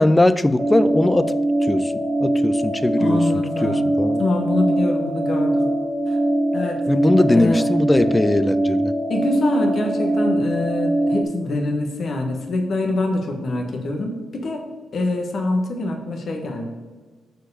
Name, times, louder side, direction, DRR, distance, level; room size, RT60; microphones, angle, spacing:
voice 1, 0.0-1.4 1.7-4.2 6.9-8.9, left 1 dB, 20° left, 13 dB, 0.5 m, -20 dB
sound 1, 0.6-11.2, right 1 dB, 25° right, 1.5 m, -22 dB
voice 2, 3.0-3.9 4.2-5.7 6.1-6.2 6.5-6.8 7.3-7.6 9.1-14.6 14.9-16.6, left 2 dB, 60° left, 2 dB, 1.3 m, -25 dB
6.3 x 4.8 x 6.5 m, 1.4 s
supercardioid pair, 55°, 0 cm